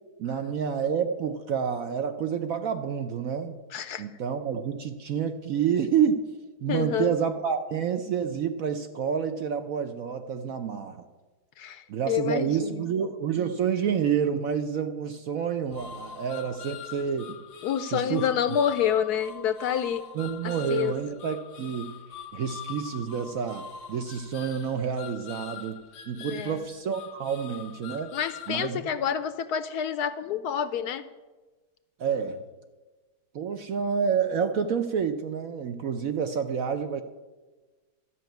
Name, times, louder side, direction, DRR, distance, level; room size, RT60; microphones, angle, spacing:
voice 1, 0.2-3.6 4.0-6.2 6.6-11.0 11.9-17.4 17.9-18.3 20.1-22.0 22.3-25.8 26.1-28.1 28.5-28.8 32.0-32.4 33.3-37.0, right 7 dB, 65° right, 8 dB, 0.9 m, -28 dB
voice 2, 3.7-4.0 6.7-7.2 11.6-12.9 17.6-20.0 20.4-20.9 26.2-26.6 28.1-31.0, left 8 dB, 70° left, 12 dB, 1.0 m, -28 dB
sound 1, 15.7-28.7, left 8 dB, 85° left, 1.6 m, -43 dB
12.5 x 5.8 x 9.1 m, 1.2 s
omnidirectional pair, 2.0 m